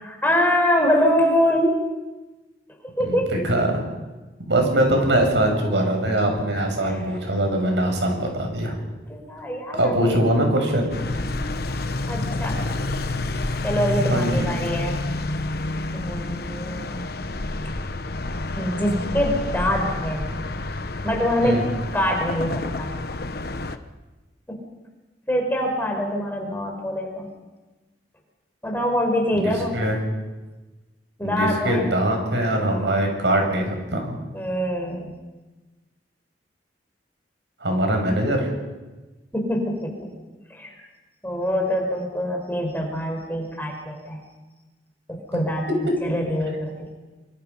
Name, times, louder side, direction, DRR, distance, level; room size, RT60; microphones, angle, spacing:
voice 1, 0.0-1.8 3.0-3.4 9.1-10.1 12.1-12.6 13.6-15.0 15.9-17.0 18.6-20.6 21.0-21.6 21.9-22.9 24.5-24.6 25.3-27.3 28.6-29.7 31.2-31.9 34.3-35.1 39.3-40.1 40.5-40.8 41.2-44.2 45.1-45.7 46.0-46.9, equal, 10° left, 1 dB, 5.1 m, -24 dB
voice 2, 3.1-3.8 4.5-8.8 9.7-10.9 14.1-14.5 21.4-21.7 29.4-30.0 31.2-34.2 37.6-38.5, right 1 dB, 85° right, 2 dB, 7.4 m, -22 dB
sound 1, 10.9-23.8, left 2 dB, 60° left, 1.1 m, -28 dB
25.5 x 25.0 x 5.7 m, 1.2 s
head